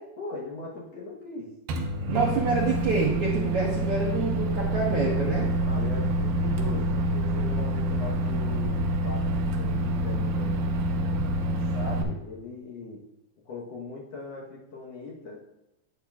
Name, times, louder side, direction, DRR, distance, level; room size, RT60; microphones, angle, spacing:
voice 1, 0.2-1.5 5.6-10.8 11.5-13.0 13.5-15.4, left 3 dB, 60° left, -3 dB, 1.8 m, -40 dB
Microwave oven, 1.7-12.0, right 1 dB, 90° right, 2.6 m, -27 dB
voice 2, 2.1-5.5, right 3 dB, 65° right, -3 dB, 1.4 m, -27 dB
10.5 x 8.6 x 2.3 m, 0.87 s
omnidirectional pair, 3.9 m